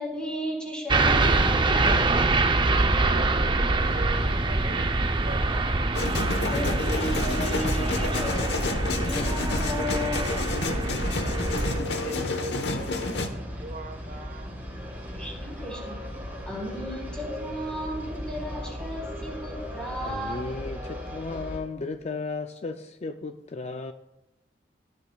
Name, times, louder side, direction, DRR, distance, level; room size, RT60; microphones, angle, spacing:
voice 1, 0.0-1.8 6.5-10.3 15.1-16.0 16.5-20.6, equal, 5° left, -2 dB, 4.3 m, -35 dB
sound 1, 0.9-11.8, right 2 dB, 25° right, 0.6 m, -25 dB
voice 2, 2.6-6.0 11.2-14.5, right 2 dB, 55° right, 6 dB, 1.0 m, -40 dB
sound 2, 3.8-21.6, equal, 10° right, 4.5 m, -37 dB
sound 3, 5.9-13.3, left 2 dB, 70° left, 1.1 m, -30 dB
voice 3, 20.0-23.9, left 3 dB, 40° left, 7 dB, 0.4 m, -35 dB
17.0 x 11.5 x 2.3 m, 0.91 s
head